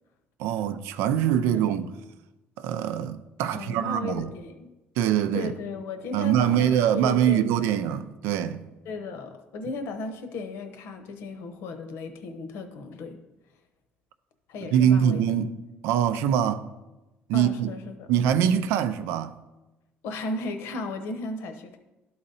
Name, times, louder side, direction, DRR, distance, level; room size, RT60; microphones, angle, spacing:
voice 1, 0.4-1.9 2.6-4.3 5.0-5.5 6.1-8.7 14.6-15.6 15.8-16.7 17.3-17.7 18.1-19.3, right 9 dB, 85° right, 0.5 m, -23 dB
voice 2, 3.5-4.7 5.3-7.8 8.8-13.2 14.5-15.2 17.3-18.1 20.0-21.8, left 3 dB, 70° left, 0.9 m, -35 dB
11.5 x 3.9 x 4.1 m
cardioid pair, 155°, 4 cm